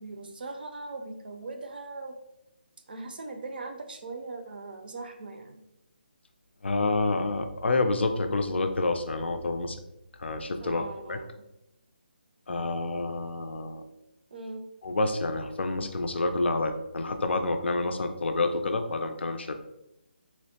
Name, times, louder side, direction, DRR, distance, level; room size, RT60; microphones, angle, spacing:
voice 1, 0.0-2.1 2.9-5.6 10.6-11.3 14.3-14.6, right 3 dB, 55° right, 5 dB, 0.4 m, -40 dB
voice 2, 6.6-9.8 10.2-11.2 12.5-13.8 14.8-19.5, left 2 dB, 85° left, 7 dB, 0.4 m, -28 dB
4.2 x 2.1 x 2.7 m, 0.88 s
hypercardioid pair, 165°, 6 cm